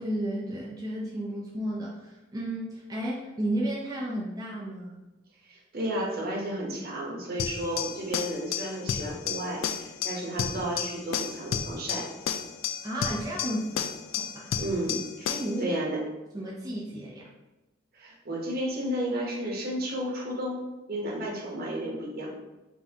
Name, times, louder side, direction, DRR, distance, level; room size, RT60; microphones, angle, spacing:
voice 1, 0.0-5.0 12.8-13.9 14.2-14.5 15.3-15.8 16.3-17.3, right 1 dB, 20° right, -5 dB, 0.5 m, -33 dB
voice 2, 5.5-12.1 14.6-16.0 17.9-20.6 20.9-22.3, right 1 dB, 50° right, -2 dB, 1.1 m, -32 dB
sound 1, 7.4-15.6, left 8 dB, 80° left, 0.3 m, -32 dB
4.1 x 3.8 x 2.9 m, 1.1 s
head